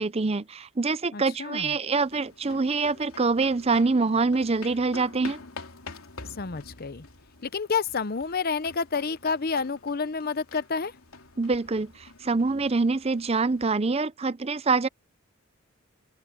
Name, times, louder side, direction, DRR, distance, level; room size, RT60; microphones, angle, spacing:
voice 1, 0.0-5.4 11.4-14.9, right 4 dB, 30° right, 0.6 m, -25 dB
voice 2, 1.1-1.7 6.3-7.1 7.4-10.9, left 5 dB, 45° left, 0.7 m, -29 dB
sound 1, 1.9-13.7, left 3 dB, 85° left, 3.1 m, -47 dB
open air
head